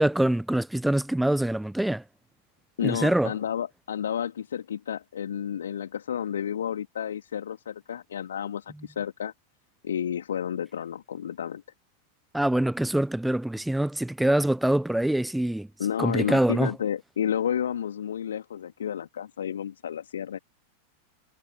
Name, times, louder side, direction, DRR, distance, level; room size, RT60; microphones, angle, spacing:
voice 1, 0.0-2.0 2.8-3.3 12.3-15.7 16.0-16.7, right 1 dB, 5° right, 0.4 m, -24 dB
voice 2, 2.8-9.3 9.8-11.6 15.8-20.4, left 9 dB, 65° left, 2.0 m, -31 dB
figure-of-eight pair, 90°, 0 cm